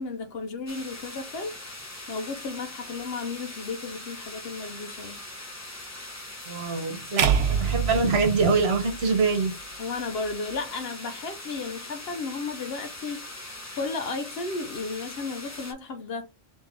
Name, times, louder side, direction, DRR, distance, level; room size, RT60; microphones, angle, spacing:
voice 1, 0.0-1.5 2.1-5.2 9.8-13.3 13.8-16.3, left 4 dB, 65° left, 0.8 m, -34 dB
sound 1, 0.7-15.7, left 2 dB, 15° left, 0.7 m, -41 dB
voice 2, 6.5-9.5, right 4 dB, 60° right, 1.2 m, -24 dB
sound 2, 7.2-9.4, right 7 dB, 80° right, 0.9 m, -26 dB
3.4 x 3.0 x 3.6 m
omnidirectional pair, 1.2 m